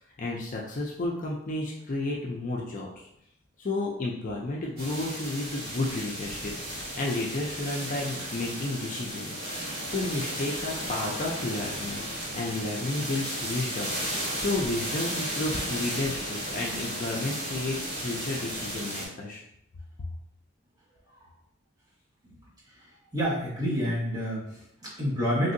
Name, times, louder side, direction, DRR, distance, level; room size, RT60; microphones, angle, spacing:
voice 1, 0.2-3.1 3.6-12.0 12.3-19.4, left 2 dB, 40° left, -2 dB, 0.4 m, -32 dB
sound 1, 4.8-19.1, right 1 dB, 50° right, 1.3 m, -34 dB
voice 2, 22.7-25.5, equal, 20° right, -8 dB, 1.2 m, -29 dB
3.2 x 2.7 x 2.6 m, 0.76 s
head